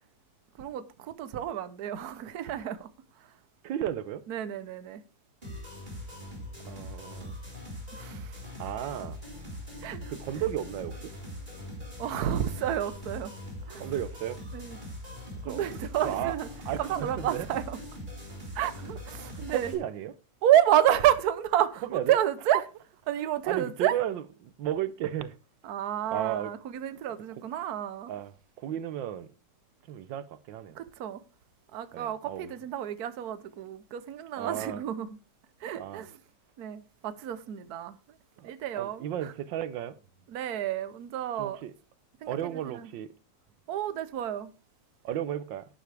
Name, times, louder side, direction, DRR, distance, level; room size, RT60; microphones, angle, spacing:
voice 1, 0.6-2.9 4.3-5.0 7.9-8.4 9.8-10.1 12.0-13.4 13.7-13.9 14.5-14.8 15.5-16.5 16.8-17.8 18.5-19.8 20.4-22.6 23.1-23.9 25.6-28.1 30.7-31.2 31.7-35.2 35.6-36.2 36.6-38.0 38.4-39.3 40.3-41.6 42.2-42.9 43.7-44.5, right 11 dB, 60° right, 1.3 m, -30 dB
voice 2, 3.6-4.2 6.7-7.3 8.6-9.2 10.1-11.1 13.8-14.4 15.4-15.6 16.0-16.3 16.6-17.5 18.6-18.7 19.5-20.1 21.9-22.2 23.4-25.3 26.1-26.5 28.1-28.3 28.6-29.3 29.9-30.8 31.9-32.5 34.3-34.8 35.8-36.1 38.4-38.5 38.8-40.0 41.4-41.7 42.3-43.1 45.0-45.7, right 11 dB, 85° right, 1.5 m, -34 dB
sound 1, 5.4-19.7, left 1 dB, 25° right, 4.5 m, -41 dB
11.5 x 10.0 x 3.4 m
omnidirectional pair, 2.0 m